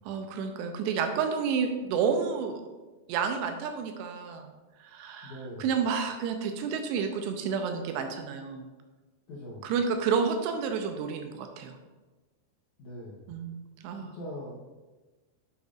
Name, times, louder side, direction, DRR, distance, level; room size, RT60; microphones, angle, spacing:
voice 1, 0.1-2.6 3.1-4.5 4.8-5.3 5.6-8.7 9.6-11.8 13.3-14.2, right 6 dB, 85° right, 5 dB, 2.7 m, -30 dB
voice 2, 5.2-5.7 9.3-9.7 12.8-13.3 13.9-14.5, left 1 dB, 70° left, -6 dB, 1.9 m, -42 dB
9.1 x 7.2 x 2.5 m, 1.2 s
omnidirectional pair, 5.0 m